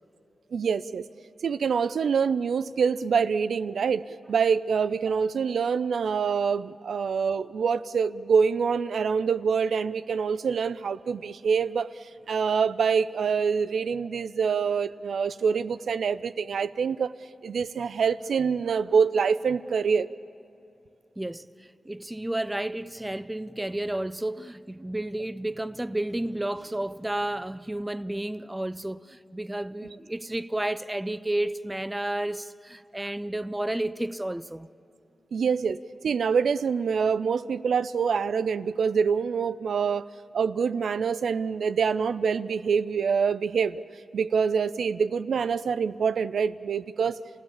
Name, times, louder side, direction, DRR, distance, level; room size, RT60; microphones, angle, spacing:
voice 1, 0.5-1.1 1.4-17.1 17.4-20.1 35.3-40.0 40.3-43.8 44.1-47.2, right 6 dB, 90° right, 0.5 m, -25 dB
voice 2, 21.2-34.7, right 1 dB, 10° right, 0.4 m, -31 dB
28.5 x 17.0 x 7.3 m
wide cardioid pair, 125°, 0 cm